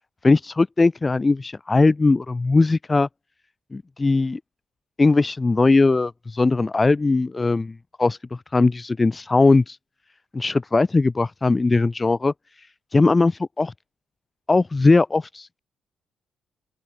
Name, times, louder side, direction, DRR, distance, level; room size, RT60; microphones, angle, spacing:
voice 1, 0.2-3.1 3.7-4.4 5.0-9.8 10.3-12.3 12.9-13.7 14.5-15.6, left 3 dB, 25° left, 4.1 m, -19 dB
open air
cardioid pair, 90°, 0 cm